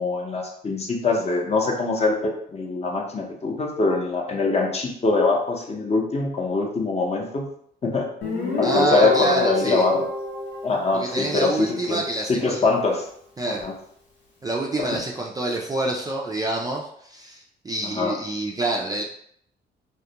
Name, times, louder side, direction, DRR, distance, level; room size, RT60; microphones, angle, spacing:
voice 1, 0.0-7.5 7.8-8.1 8.6-10.0 10.6-12.0 12.3-13.1 13.4-13.7 14.8-15.0 17.9-18.2, left 3 dB, 30° left, 0 dB, 0.6 m, -23 dB
Guitar, 8.2-11.7, left 2 dB, 90° left, 0.8 m, -27 dB
voice 2, 8.6-9.8 10.9-12.7 13.4-13.6 14.4-19.0, right 2 dB, 20° right, -2 dB, 0.3 m, -27 dB
2.3 x 2.1 x 2.8 m, 0.66 s
cardioid pair, 90°, 20 cm